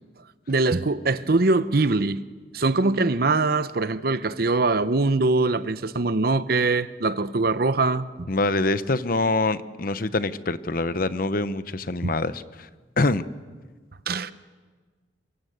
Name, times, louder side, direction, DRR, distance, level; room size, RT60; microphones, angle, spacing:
voice 1, 0.5-2.2 2.5-8.3 12.0-12.1 14.1-14.3, right 3 dB, 55° right, 0.8 m, -22 dB
voice 2, 8.3-12.7 13.0-13.2, left 2 dB, 50° left, 0.9 m, -25 dB
28.0 x 23.5 x 8.0 m
head